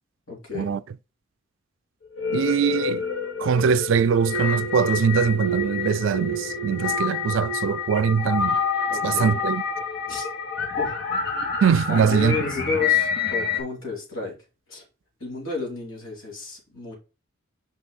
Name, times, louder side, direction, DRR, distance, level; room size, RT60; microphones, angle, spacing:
voice 1, 0.3-0.8 8.9-9.4 10.1-10.2 10.8-11.0 11.9-14.3 14.7-14.8 15.2-16.9, left 4 dB, 85° left, 3.3 m, -31 dB
sound 1, 2.1-13.6, left 5 dB, 55° left, 2.0 m, -27 dB
voice 2, 2.3-3.1 3.4-8.6 9.0-9.6 11.6-12.4, right 7 dB, 65° right, 0.3 m, -22 dB
6.1 x 5.4 x 4.0 m
head